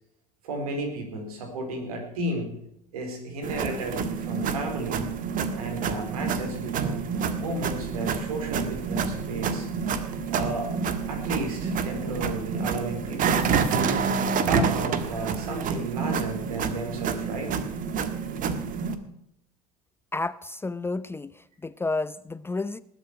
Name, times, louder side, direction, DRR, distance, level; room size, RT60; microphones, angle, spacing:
voice 1, 0.4-2.5 2.9-5.1 5.5-7.0 7.4-9.7 10.3-10.7 11.1-14.0 14.5-17.6, right 2 dB, 75° right, 4 dB, 4.2 m, -33 dB
sound 1, 3.4-18.9, right 6 dB, 45° right, 1.6 m, -28 dB
voice 2, 20.1-22.8, left 3 dB, 10° left, 17 dB, 0.5 m, -31 dB
20.0 x 8.1 x 6.0 m, 0.78 s
figure-of-eight pair, 70°, 19 cm